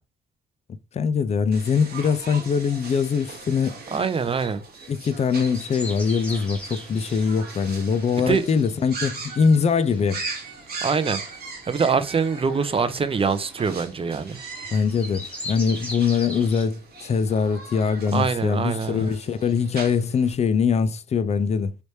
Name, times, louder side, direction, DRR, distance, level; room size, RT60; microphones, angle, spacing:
voice 1, 0.9-3.8 4.9-10.2 14.7-21.8, left 6 dB, 35° left, 0.4 m, -22 dB
sound 1, 1.5-20.3, right 4 dB, 50° right, 1.1 m, -39 dB
voice 2, 3.9-4.6 8.2-8.4 10.8-11.2 11.7-14.4 18.1-19.1, right 5 dB, 30° right, 0.5 m, -24 dB
sound 2, 5.2-16.7, left 1 dB, 5° left, 1.3 m, -41 dB
3.2 x 3.1 x 2.7 m
cardioid pair, 90°, 20 cm